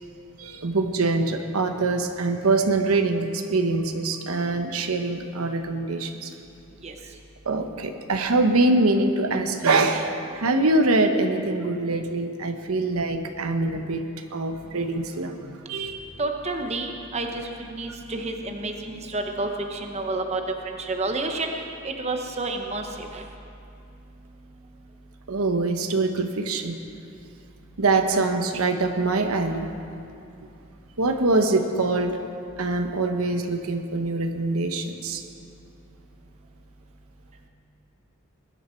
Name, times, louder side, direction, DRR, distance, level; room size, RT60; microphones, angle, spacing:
voice 1, 0.4-6.3 7.4-14.0 14.3-16.0 25.3-26.8 27.8-29.7 31.0-32.2 32.6-35.2, right 2 dB, 85° right, 5 dB, 1.0 m, -24 dB
voice 2, 16.2-21.5 21.8-23.2, right 2 dB, 30° right, 4 dB, 0.9 m, -30 dB
21.0 x 10.0 x 4.4 m, 2.6 s
head